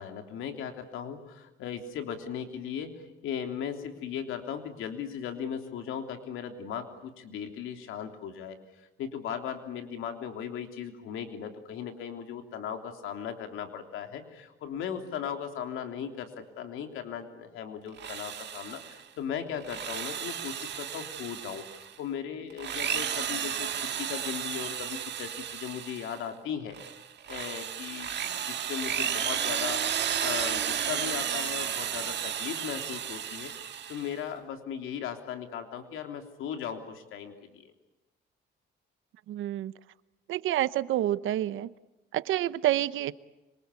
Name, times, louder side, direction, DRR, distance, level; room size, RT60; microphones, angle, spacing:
voice 1, 0.0-23.7 24.0-26.8 27.3-28.1 28.4-37.7, left 8 dB, 85° left, 6 dB, 3.3 m, -37 dB
Drill, 17.9-19.0 19.5-21.9 22.5-26.2 26.7-34.2, right 9 dB, 60° right, 1.9 m, -33 dB
voice 2, 39.3-39.7 40.3-41.7 42.1-43.1, right 13 dB, 80° right, 16 dB, 1.0 m, -28 dB
26.0 x 25.0 x 8.5 m, 1.0 s
cardioid pair, 90°, 20 cm